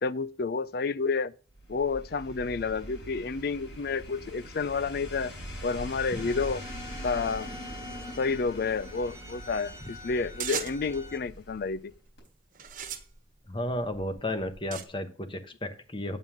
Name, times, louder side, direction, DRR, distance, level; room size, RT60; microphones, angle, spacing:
voice 1, 0.0-1.3 1.7-5.3 5.6-6.6 7.0-7.6 8.2-11.9, left 4 dB, 55° left, 0.4 m, -30 dB
sound 1, 1.5-11.9 12.2-12.3, equal, 80° left, 4.8 m, -43 dB
sound 2, 6.1-11.2, equal, 15° right, 0.9 m, -47 dB
sound 3, 10.4-11.0 11.8-12.1 12.5-14.8, right 8 dB, 45° right, 1.2 m, -38 dB
voice 2, 13.5-16.2, left 1 dB, 30° left, 1.1 m, -33 dB
9.1 x 5.5 x 6.3 m
head